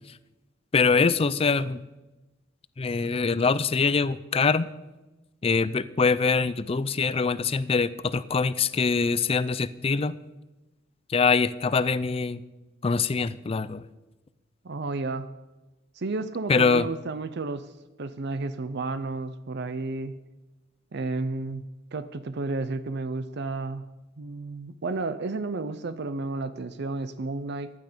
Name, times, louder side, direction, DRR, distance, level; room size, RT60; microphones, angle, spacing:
voice 1, 0.7-1.8 2.8-4.7 5.4-10.1 11.1-12.4 12.8-13.8 16.5-16.9, left 4 dB, 30° left, 16 dB, 0.4 m, -24 dB
voice 2, 14.6-15.3 16.0-17.7 18.0-20.2 20.9-21.6 21.9-23.8 24.2-27.7, right 3 dB, 60° right, 12 dB, 0.6 m, -32 dB
15.0 x 11.0 x 5.1 m, 1.1 s
head